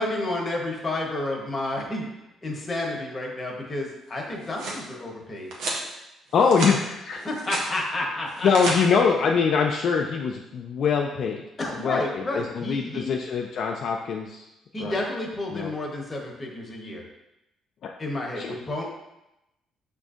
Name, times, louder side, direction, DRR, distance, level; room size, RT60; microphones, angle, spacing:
voice 1, 0.0-2.1 2.4-5.5 7.2-8.5 11.6-13.1 14.7-17.0 18.0-18.8, left 2 dB, 25° left, -1 dB, 0.9 m, -30 dB
sound 1, 4.2-4.8 5.5-5.8 6.3-6.8 7.1-7.7 8.3-8.8, right 2 dB, 85° right, 0.8 m, -31 dB
voice 2, 6.3-7.2 8.4-11.4 11.7-14.4 14.8-15.0 15.5-15.7 17.8-17.9 18.4-18.5, left 5 dB, 60° left, 1 dB, 0.3 m, -23 dB
5.9 x 2.5 x 2.4 m, 0.91 s
cardioid pair, 95°, 0 cm